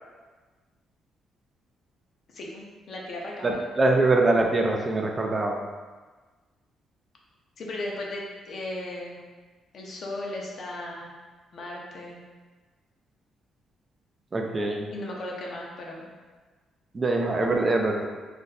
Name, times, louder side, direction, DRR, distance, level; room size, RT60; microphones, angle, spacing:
voice 1, 2.3-3.6 7.6-9.2 9.7-11.1 11.5-12.2 14.9-16.1, left 1 dB, 55° left, -2 dB, 0.6 m, -36 dB
voice 2, 3.4-5.6 14.3-14.9 16.9-18.1, right 2 dB, 30° right, 2 dB, 0.4 m, -23 dB
2.5 x 2.1 x 4.0 m, 1.3 s
cardioid pair, 90°, 0 cm